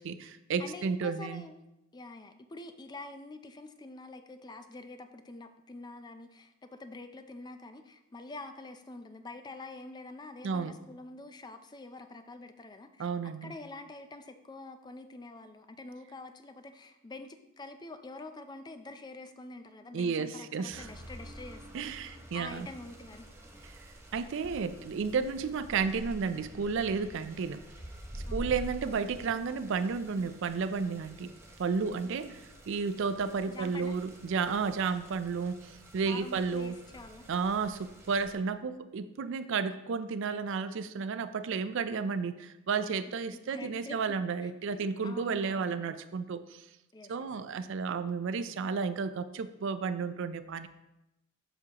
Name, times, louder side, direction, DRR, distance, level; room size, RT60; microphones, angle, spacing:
voice 1, 0.0-1.4 10.4-10.8 13.0-13.5 19.9-20.9 21.7-22.7 24.1-27.6 28.3-31.3 31.6-32.3 32.7-36.8 37.3-46.6 47.1-50.7, right 5 dB, 60° right, 12 dB, 0.4 m, -32 dB
voice 2, 0.6-1.6 1.9-13.1 13.4-23.3 28.2-29.0 32.0-32.1 33.4-33.9 36.1-37.3 43.2-44.0 44.4-45.7 46.9-47.3, left 2 dB, 20° left, 8 dB, 0.4 m, -46 dB
sound 1, 20.7-38.3, right 1 dB, 10° right, 0.7 m, -48 dB
7.0 x 6.0 x 2.9 m, 0.93 s
head